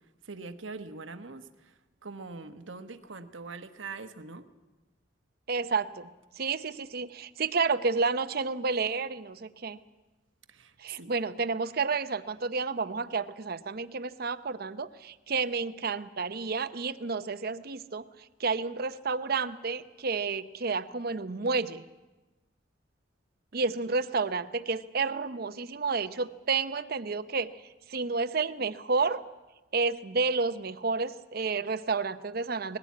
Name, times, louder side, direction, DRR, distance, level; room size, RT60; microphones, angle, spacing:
voice 1, 0.2-4.4 10.5-11.1, right 4 dB, 85° right, 9 dB, 1.2 m, -43 dB
voice 2, 5.5-6.1 6.3-9.8 10.8-18.1 18.4-21.8 23.5-27.5 27.9-29.2 29.7-32.8, right 4 dB, 55° right, 12 dB, 0.7 m, -30 dB
20.0 x 16.0 x 8.5 m, 1.1 s
head